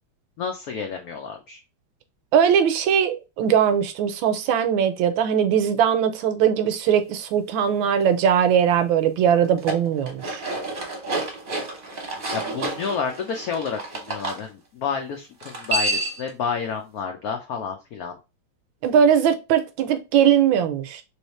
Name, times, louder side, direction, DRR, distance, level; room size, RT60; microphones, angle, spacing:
voice 1, 0.4-1.6 12.3-18.2, left 6 dB, 85° left, 0.8 m, -30 dB
voice 2, 2.3-10.4 18.8-21.0, right 8 dB, 80° right, 1.3 m, -20 dB
sound 1, 9.4-14.4 15.4-16.3, right 2 dB, 40° right, 0.9 m, -29 dB
3.1 x 3.1 x 3.0 m
omnidirectional pair, 2.2 m